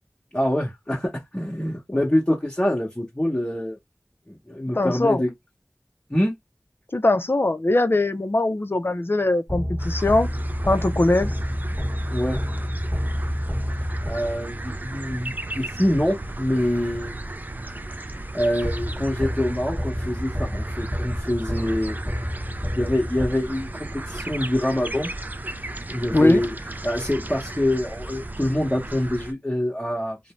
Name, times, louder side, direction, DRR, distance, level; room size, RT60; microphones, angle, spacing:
voice 1, 0.3-3.8 4.3-5.3 6.1-6.3 12.1-12.4 14.1-17.2 18.3-22.0 22.7-25.1 25.9-26.5 26.8-30.2, left 1 dB, 20° left, 0.9 m, -25 dB
voice 2, 4.7-5.2 6.9-10.3 10.7-11.3 26.1-26.4, left 2 dB, 40° left, 0.4 m, -21 dB
sound 1, 9.5-14.6 18.6-23.8, equal, 5° right, 1.1 m, -29 dB
sound 2, 9.8-29.3, right 2 dB, 30° right, 0.3 m, -34 dB
2.6 x 2.1 x 2.9 m
wide cardioid pair, 40°, 6 cm